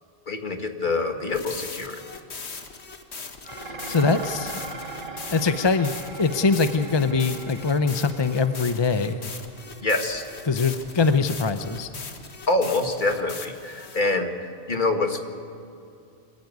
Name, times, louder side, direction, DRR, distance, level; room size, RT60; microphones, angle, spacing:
voice 1, 0.3-2.0 9.8-10.2 12.5-15.2, left 2 dB, 45° left, 5 dB, 1.8 m, -25 dB
sound 1, 1.3-14.0, left 4 dB, 85° left, 1.8 m, -40 dB
Dishes pots and pans, 3.4-12.3, right 3 dB, 50° right, 2.2 m, -41 dB
voice 2, 3.5-4.5 5.3-9.3 10.5-11.9, left 4 dB, 30° left, 10 dB, 0.6 m, -23 dB
24.5 x 15.0 x 9.4 m, 2.5 s
omnidirectional pair, 1.1 m